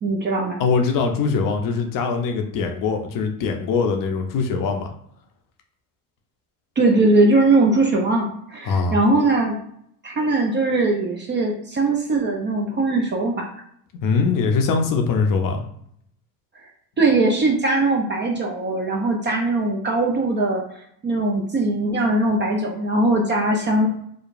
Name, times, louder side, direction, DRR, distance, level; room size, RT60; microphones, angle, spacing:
voice 1, 0.0-0.6 6.8-9.6 10.0-13.5 17.0-20.6 21.0-23.9, right 2 dB, 25° right, 0 dB, 0.4 m, -20 dB
voice 2, 0.6-4.9 8.6-9.0 14.0-15.6, left 5 dB, 45° left, 4 dB, 0.5 m, -22 dB
2.9 x 2.2 x 2.5 m, 0.68 s
hypercardioid pair, 80°, 48 cm